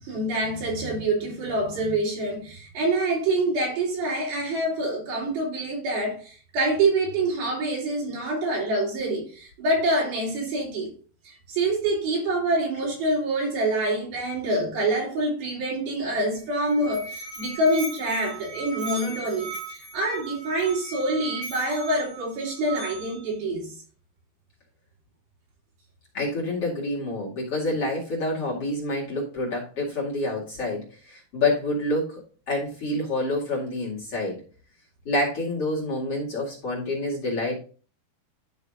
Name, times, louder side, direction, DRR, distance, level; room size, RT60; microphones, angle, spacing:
voice 1, 0.0-10.9 11.3-23.8, right 2 dB, 70° right, 5.3 m, -26 dB
Musical instrument, 16.3-23.3, right 4 dB, 90° right, 6.5 m, -38 dB
voice 2, 26.1-32.2 32.5-34.4 35.0-37.6, left 2 dB, 45° left, 2.9 m, -27 dB
12.0 x 6.2 x 2.5 m
omnidirectional pair, 4.5 m